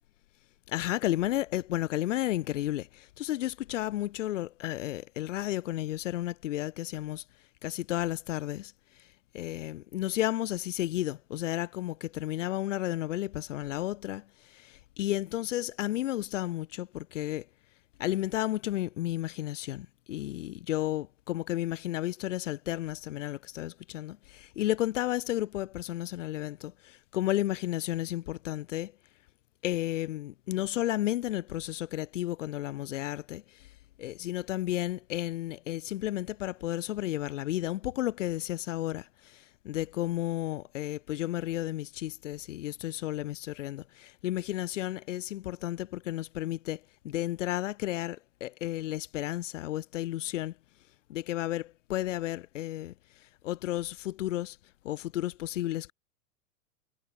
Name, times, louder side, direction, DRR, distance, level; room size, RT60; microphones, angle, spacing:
voice 1, 0.7-7.2 7.6-17.5 18.0-28.9 29.6-33.7 34.0-50.5 51.1-54.6 54.8-55.9, left 14 dB, 55° left, 3.6 m, -33 dB
figure-of-eight pair, 95°, 45 cm